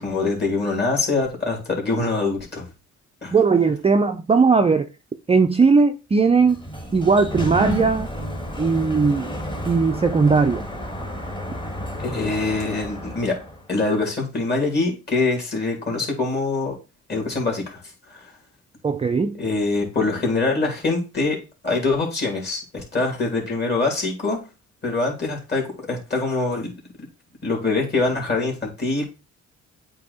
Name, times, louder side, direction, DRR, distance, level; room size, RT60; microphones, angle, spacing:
voice 1, 0.0-2.7 3.2-3.3 12.0-13.4 13.7-16.8 17.1-17.8 18.1-18.3 19.4-21.4 21.6-24.4 24.8-26.7 27.4-29.0, left 3 dB, 35° left, 3.0 m, -24 dB
voice 2, 3.3-4.9 5.3-6.6 6.9-8.1 8.6-9.3 9.7-10.6 18.8-19.4, right 4 dB, 20° right, 0.5 m, -18 dB
Sliding door, 6.3-13.7, equal, 15° left, 1.4 m, -31 dB
8.5 x 2.9 x 4.1 m
cardioid pair, 90°, 30 cm